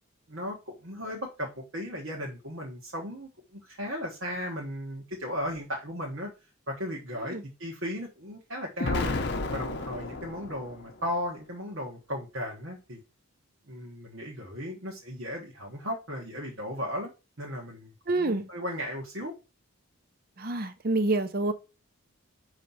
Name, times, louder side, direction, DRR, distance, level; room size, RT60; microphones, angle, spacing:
voice 1, 0.3-6.3 6.7-9.2 9.5-13.0 13.7-17.1 17.4-19.3, equal, 65° right, 1.3 m, -36 dB
Explosion, 8.8-10.9, left 2 dB, 50° left, 0.7 m, -32 dB
voice 2, 18.1-18.5 20.4-21.5, right 2 dB, 45° right, 0.7 m, -27 dB
5.2 x 3.2 x 5.5 m
head